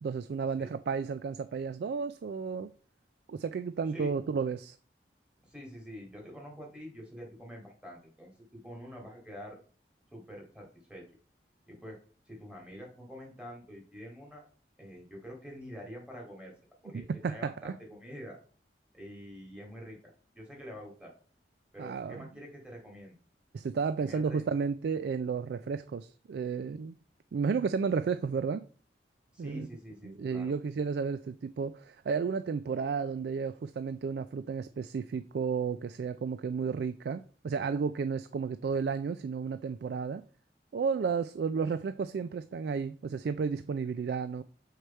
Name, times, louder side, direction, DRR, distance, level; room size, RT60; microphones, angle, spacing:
voice 1, 0.0-2.7 3.3-4.8 16.9-17.8 21.8-22.3 23.5-26.9 27.3-28.6 29.4-29.7 30.1-40.2 40.7-44.4, right 5 dB, 65° right, 0.3 m, -32 dB
voice 2, 5.4-9.6 10.1-11.0 11.7-12.0 12.3-14.5 14.8-16.5 16.8-18.4 18.9-20.0 20.3-21.1 21.7-23.1 24.0-24.4 29.3-30.6, equal, 5° right, 2.1 m, -46 dB
6.6 x 4.8 x 4.3 m
head